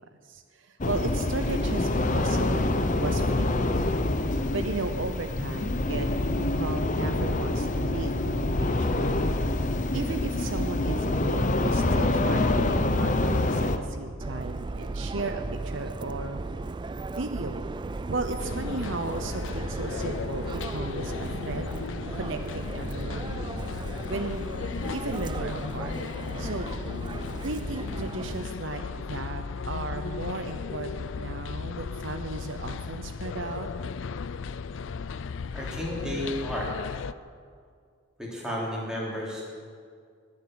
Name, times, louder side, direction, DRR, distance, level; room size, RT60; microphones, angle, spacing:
voice 1, 0.2-3.5 3.8-3.9 4.5-6.1 6.5-9.3 9.9-16.4 17.1-17.7 18.1-21.7 22.1-23.4 24.1-24.4 24.9-26.0 26.4-26.9 27.4-33.7, right 3 dB, 65° right, 7 dB, 0.8 m, -35 dB
sound 1, 0.8-13.8, left 2 dB, 35° left, 0.7 m, -26 dB
Subway metro underground, 14.2-28.5, right 3 dB, 20° right, 0.3 m, -36 dB
sound 2, 18.4-37.1, left 5 dB, 65° left, 0.4 m, -36 dB
voice 2, 35.5-36.7 38.2-39.4, equal, 5° right, -5 dB, 3.5 m, -32 dB
20.5 x 7.3 x 7.8 m, 2.1 s
head